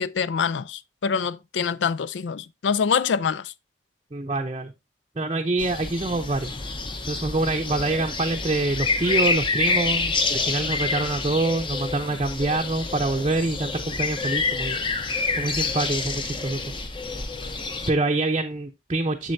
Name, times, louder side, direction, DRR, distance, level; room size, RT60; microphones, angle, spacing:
voice 1, 0.0-3.5, left 6 dB, 85° left, 0.4 m, -25 dB
voice 2, 4.1-4.7 5.2-6.5 7.1-16.7 17.9-19.3, right 2 dB, 30° right, 0.6 m, -26 dB
sound 1, 5.6-17.9, left 4 dB, 25° left, 0.7 m, -28 dB
7.7 x 6.7 x 2.6 m
head